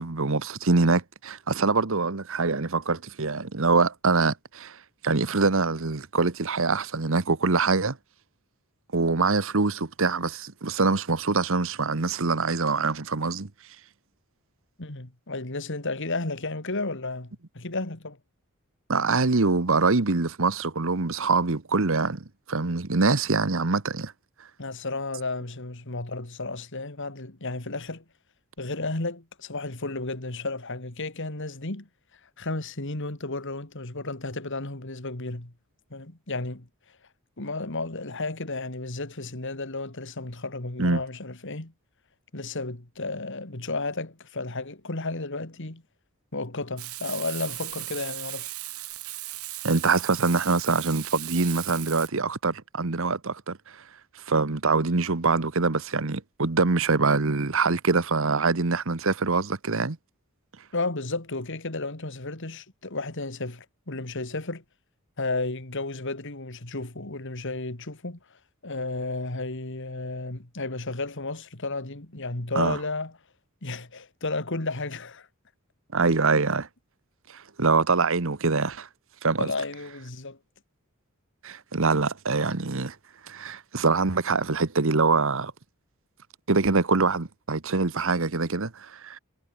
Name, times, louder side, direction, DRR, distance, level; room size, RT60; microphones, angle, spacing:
voice 1, 0.0-4.8 5.0-8.0 8.9-13.5 18.9-24.1 40.8-41.0 49.6-53.8 54.3-60.0 72.5-72.8 75.9-76.7 77.3-78.9 79.2-79.5 81.4-82.9 83.2-85.5 86.5-89.2, right 4 dB, 60° right, 1.2 m, -24 dB
voice 2, 14.8-18.2 24.6-28.0 28.6-31.9 32.4-35.5 35.9-36.7 37.4-41.7 42.3-45.8 46.3-48.5 60.7-64.6 65.2-73.1 73.6-75.3 79.4-80.4, left 3 dB, 60° left, 2.5 m, -33 dB
Frying (food), 46.8-52.1, right 17 dB, 90° right, 3.2 m, -37 dB
head